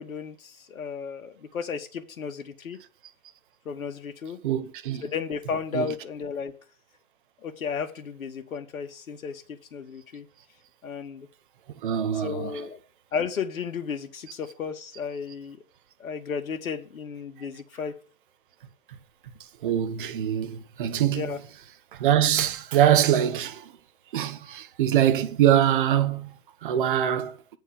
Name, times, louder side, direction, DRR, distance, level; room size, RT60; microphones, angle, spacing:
voice 1, 0.0-2.8 3.7-4.4 5.0-6.6 7.4-10.3 10.8-11.3 12.1-12.8 13.1-15.6 16.0-18.0 21.1-21.4, left 6 dB, 75° left, 1.7 m, -34 dB
voice 2, 4.4-5.0 5.7-5.9 11.8-12.5 19.6-21.4 21.9-23.7 24.1-27.4, right 10 dB, 40° right, 0.8 m, -23 dB
8.8 x 4.5 x 7.0 m
hypercardioid pair, 150°, 42 cm